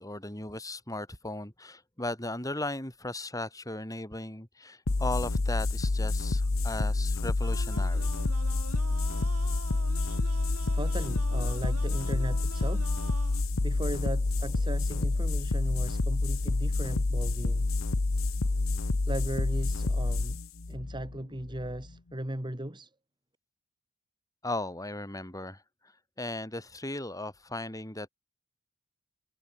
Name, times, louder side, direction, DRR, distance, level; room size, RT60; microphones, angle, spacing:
voice 1, 0.0-8.1 24.4-25.6 26.2-28.1, left 2 dB, 15° left, 5.5 m, -37 dB
sound 1, 4.9-21.9, left 2 dB, 65° left, 1.0 m, -28 dB
sound 2, 7.4-13.4, right 3 dB, 85° right, 4.0 m, -45 dB
voice 2, 10.3-13.0 13.6-17.7 19.1-20.4 20.7-22.9, right 1 dB, 20° right, 2.1 m, -37 dB
head